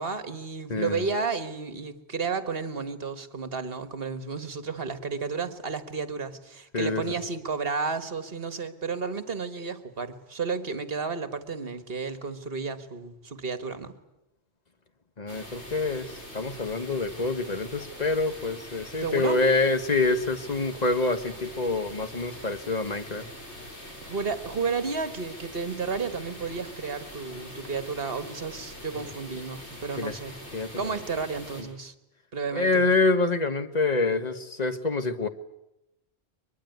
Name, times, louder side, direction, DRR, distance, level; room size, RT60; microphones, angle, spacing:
voice 1, 0.0-14.0 19.0-19.4 24.0-30.4 30.8-31.9 32.3-32.8, right 4 dB, 60° right, 11 dB, 1.8 m, -32 dB
voice 2, 0.7-1.0 6.7-7.1 15.2-23.3 30.0-30.1 30.5-30.9 31.6-31.7 32.5-35.3, left 3 dB, 40° left, 9 dB, 1.5 m, -26 dB
sound 1, 15.3-31.6, equal, 85° left, 6.5 m, -43 dB
23.0 x 22.0 x 9.3 m, 0.89 s
omnidirectional pair, 1.1 m